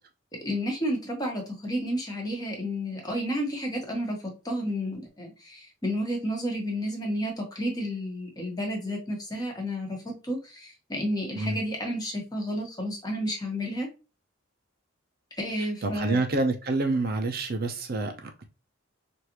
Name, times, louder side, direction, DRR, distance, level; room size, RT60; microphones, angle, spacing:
voice 1, 0.4-4.2 4.4-10.0 10.2-13.9 15.4-16.2, equal, 20° left, 1.1 m, -31 dB
voice 2, 15.6-18.4, right 2 dB, 50° right, 0.6 m, -28 dB
4.8 x 2.6 x 2.9 m
head